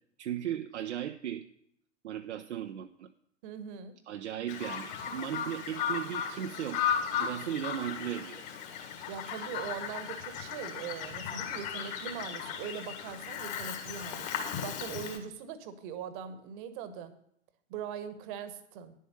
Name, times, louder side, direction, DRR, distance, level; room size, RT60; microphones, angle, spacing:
voice 1, 0.2-1.4 2.0-3.1 4.1-6.8 7.2-8.4, right 10 dB, 65° right, 6 dB, 0.6 m, -36 dB
voice 2, 3.4-3.9 9.1-14.3 14.6-17.1 17.7-18.9, right 8 dB, 45° right, 11 dB, 1.2 m, -41 dB
Bird vocalization bird call bird song, 4.5-15.2, left 8 dB, 40° left, 1.8 m, -36 dB
10.0 x 7.5 x 5.4 m, 0.71 s
figure-of-eight pair, 95°, 37 cm